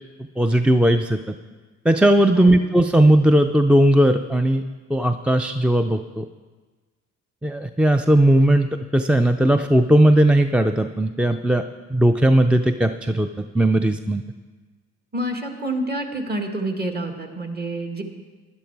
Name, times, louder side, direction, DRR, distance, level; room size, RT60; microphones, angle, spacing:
voice 1, 0.4-1.3 1.9-4.6 4.9-6.3 7.4-11.6 11.9-14.2, right 1 dB, 5° right, 8 dB, 0.3 m, -17 dB
voice 2, 15.1-18.0, right 1 dB, 30° right, 4 dB, 1.7 m, -28 dB
12.0 x 11.0 x 4.6 m, 1.3 s
cardioid pair, 90°, 30 cm